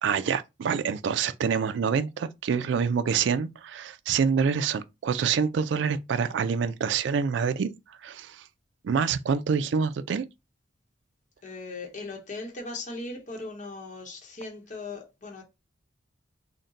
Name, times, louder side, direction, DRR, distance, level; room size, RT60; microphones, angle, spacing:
voice 1, 0.0-7.7 8.0-8.4 8.8-10.2, right 6 dB, 65° right, 0.3 m, -26 dB
voice 2, 11.4-15.4, left 3 dB, 40° left, 0.9 m, -38 dB
3.9 x 2.1 x 3.9 m
head